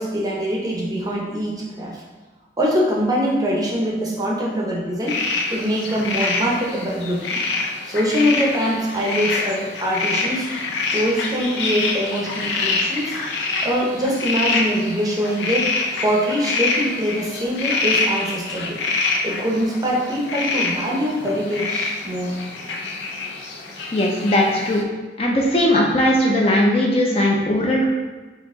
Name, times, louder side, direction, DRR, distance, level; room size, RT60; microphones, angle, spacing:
voice 1, 0.0-2.0 2.6-5.2 5.5-7.4 7.8-10.5 10.9-13.2 13.6-15.7 16.0-18.8 19.2-22.4, equal, 20° right, -3 dB, 0.6 m, -23 dB
sound 1, 5.1-24.8, left 3 dB, 80° left, 0.6 m, -26 dB
voice 2, 23.9-24.8 25.2-27.9, left 1 dB, 30° left, -1 dB, 0.5 m, -18 dB
4.2 x 2.8 x 3.6 m, 1.3 s
head